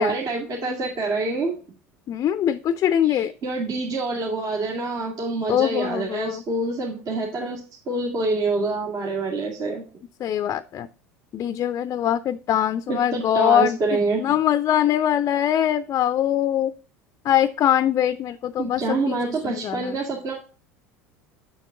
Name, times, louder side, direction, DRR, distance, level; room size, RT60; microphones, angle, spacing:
voice 1, 0.0-1.5 3.0-9.8 12.9-14.2 18.6-20.3, right 3 dB, 45° right, -2 dB, 2.3 m, -26 dB
voice 2, 2.1-3.3 5.5-6.4 10.2-10.9 11.3-16.8 17.2-19.9, left 10 dB, 40° left, 14 dB, 0.5 m, -23 dB
7.0 x 6.3 x 3.8 m, 0.36 s
hypercardioid pair, 75°, 8 cm